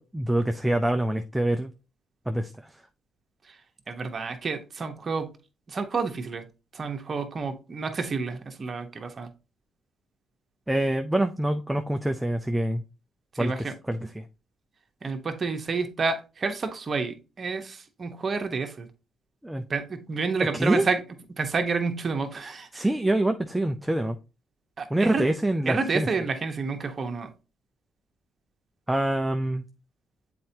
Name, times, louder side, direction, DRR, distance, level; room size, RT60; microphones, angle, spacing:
voice 1, 0.0-1.7 2.3-2.5 10.7-12.8 13.4-13.5 13.9-14.2 19.4-19.6 20.5-20.8 22.7-24.2 24.9-26.1 28.9-29.6, right 1 dB, 5° right, 5 dB, 0.5 m, -25 dB
voice 2, 3.9-5.3 5.7-6.4 6.7-9.3 13.3-13.7 15.0-18.9 19.7-21.0 21.3-22.9 24.8-25.2 25.6-27.3, right 4 dB, 40° right, 5 dB, 1.1 m, -29 dB
7.6 x 4.4 x 2.8 m, 0.31 s
cardioid pair, 90°, 0 cm